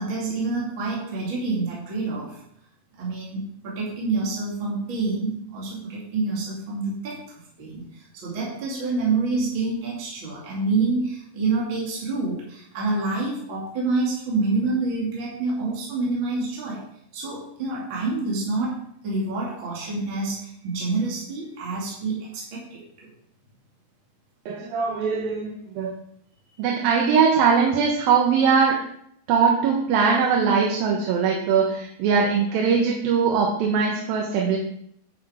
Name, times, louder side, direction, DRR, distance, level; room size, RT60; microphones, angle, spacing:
voice 1, 0.0-2.4 3.0-16.9 17.1-18.8 19.0-22.8, right 3 dB, 35° right, -5 dB, 3.2 m, -27 dB
voice 2, 24.5-26.0 26.6-28.8 29.3-34.6, right 6 dB, 80° right, -1 dB, 2.9 m, -21 dB
10.0 x 7.1 x 5.1 m, 0.72 s
omnidirectional pair, 4.1 m